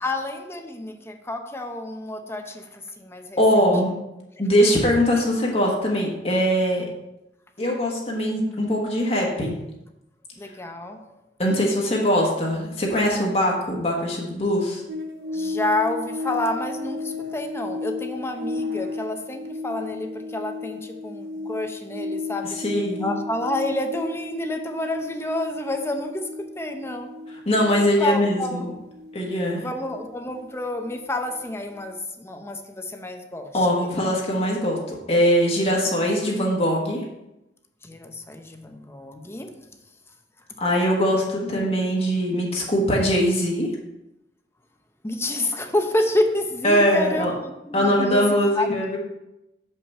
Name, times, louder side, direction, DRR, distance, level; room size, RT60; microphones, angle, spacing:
voice 1, 0.0-3.4 10.4-11.0 15.3-22.6 23.0-27.1 28.0-28.7 29.5-33.5 37.8-39.5 45.0-48.8, left 1 dB, 15° left, 5 dB, 0.7 m, -29 dB
voice 2, 3.4-3.9 4.4-6.9 7.6-9.5 11.4-14.8 22.4-23.1 27.4-28.7 29.1-29.6 33.5-37.0 40.6-43.7 46.6-47.3 47.7-49.0, equal, 35° left, -2 dB, 1.3 m, -21 dB
sound 1, 14.9-31.4 31.7-31.9, left 3 dB, 65° right, 0.9 m, -34 dB
7.0 x 5.6 x 4.2 m, 0.91 s
head